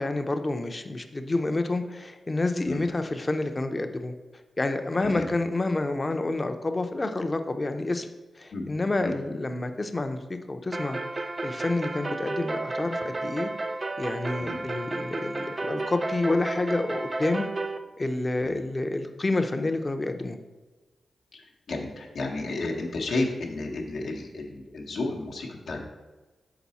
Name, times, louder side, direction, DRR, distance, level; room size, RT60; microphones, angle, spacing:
voice 1, 0.0-4.1 4.6-8.1 8.4-13.5 14.0-17.4 18.0-20.4, left 2 dB, 35° left, 7 dB, 0.6 m, -29 dB
sound 1, 10.7-17.8, right 2 dB, 40° right, 0.5 m, -32 dB
voice 2, 21.7-25.8, left 2 dB, 80° left, 0 dB, 0.9 m, -32 dB
5.9 x 4.0 x 4.1 m, 1.2 s
cardioid pair, 50°, 0 cm